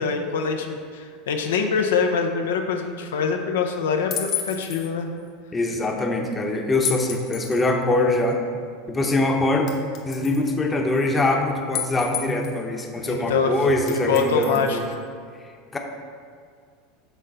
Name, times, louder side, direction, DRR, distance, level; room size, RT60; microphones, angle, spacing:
voice 1, 0.0-5.1 13.1-13.5 14.1-15.0, left 5 dB, 90° left, 4 dB, 0.6 m, -24 dB
sound 1, 4.1-4.9 6.8-7.7 8.3-8.4 9.7-10.5 11.7-12.6 13.9-14.9, left 8 dB, 55° left, 0.9 m, -31 dB
voice 2, 5.5-8.4 8.9-9.7 10.1-14.9 15.7-15.8, left 2 dB, 20° left, 2 dB, 0.8 m, -23 dB
6.3 x 3.9 x 5.4 m, 2.1 s
supercardioid pair, 115°, 0 cm